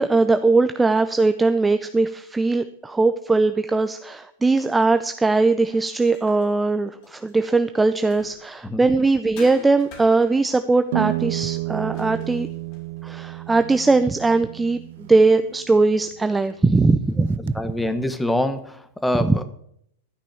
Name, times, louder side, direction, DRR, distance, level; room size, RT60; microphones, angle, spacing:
voice 1, 0.0-12.5 13.0-17.5 19.2-19.4, right 3 dB, 10° right, 10 dB, 0.6 m, -20 dB
sound 1, 5.7-8.7 9.4-13.2, left 6 dB, 50° left, 4.0 m, -47 dB
sound 2, 10.9-16.5 17.0-17.9, right 18 dB, 65° right, 0.4 m, -31 dB
voice 2, 17.5-19.4, left 1 dB, 5° left, 10 dB, 1.3 m, -25 dB
13.5 x 6.1 x 8.5 m, 0.71 s
hypercardioid pair, 110°, 0 cm